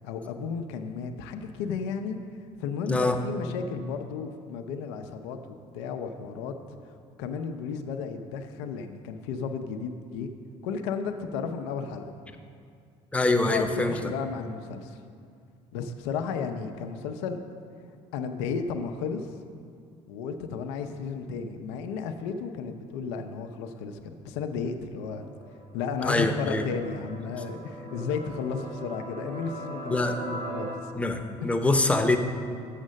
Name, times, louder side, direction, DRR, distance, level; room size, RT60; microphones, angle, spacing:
voice 1, 0.0-2.2 2.6-5.4 5.7-6.5 7.2-10.3 10.6-12.1 13.5-15.0 15.7-17.4 18.1-19.3 20.1-25.3 25.7-30.7 31.4-31.5, left 5 dB, 90° left, 7 dB, 0.5 m, -33 dB
voice 2, 2.9-3.2 13.1-14.0 26.0-26.7 29.9-30.2 30.9-32.2, left 2 dB, 10° left, 5 dB, 0.7 m, -24 dB
sound 1, 25.1-30.6, right 2 dB, 75° right, 2.2 m, -41 dB
6.5 x 6.4 x 6.3 m, 2.3 s
supercardioid pair, 85°, 14 cm